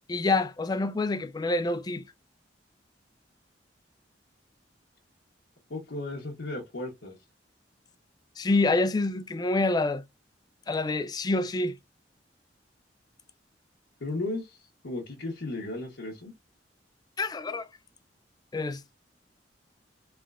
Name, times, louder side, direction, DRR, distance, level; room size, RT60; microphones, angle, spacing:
voice 1, 0.1-2.0 8.4-10.0 10.7-11.8 17.2-17.7 18.5-18.9, left 2 dB, 20° left, 0.3 m, -27 dB
voice 2, 5.7-7.2 14.0-16.3, left 2 dB, 85° left, 0.9 m, -35 dB
3.4 x 3.3 x 2.4 m
head